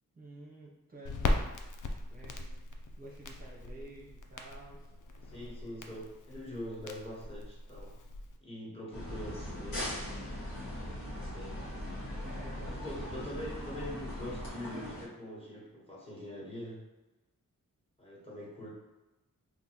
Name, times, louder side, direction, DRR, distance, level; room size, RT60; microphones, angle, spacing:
voice 1, 0.1-1.5 1.8-2.5 2.9-4.9 12.2-13.3, right 2 dB, 25° right, -6 dB, 0.6 m, -52 dB
Crackle, 1.1-8.4, left 2 dB, 65° left, 0.4 m, -38 dB
voice 2, 5.3-8.0 8.4-9.9 11.2-11.6 12.6-16.9 18.0-18.7, left 1 dB, 15° left, -6 dB, 1.1 m, -43 dB
sound 1, 8.9-15.1, left 1 dB, 85° left, 1.4 m, -39 dB
3.7 x 2.5 x 2.8 m, 1.1 s
wide cardioid pair, 110°, 34 cm